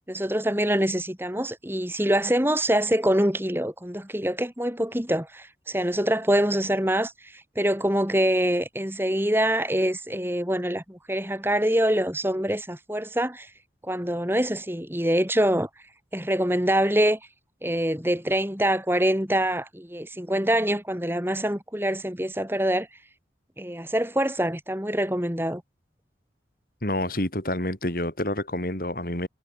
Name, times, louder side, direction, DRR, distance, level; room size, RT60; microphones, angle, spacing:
voice 1, 0.1-13.5 13.8-15.7 16.1-17.2 17.6-22.9 23.6-25.6, right 1 dB, 10° right, 3.9 m, -25 dB
voice 2, 26.8-29.3, left 1 dB, 50° left, 4.1 m, -28 dB
head